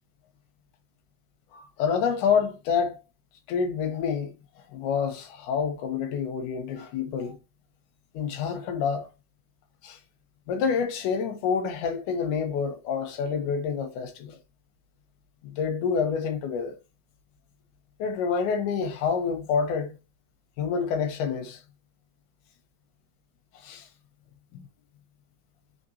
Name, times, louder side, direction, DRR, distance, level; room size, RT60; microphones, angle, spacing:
voice 1, 1.5-3.0 3.5-4.3 4.7-7.4 8.1-9.1 9.8-10.0 10.5-14.4 15.4-16.8 18.0-20.0 20.6-21.6 23.6-23.9 24.5-24.6, left 6 dB, 85° left, 2.5 m, -28 dB
5.1 x 3.5 x 2.7 m
omnidirectional pair, 3.5 m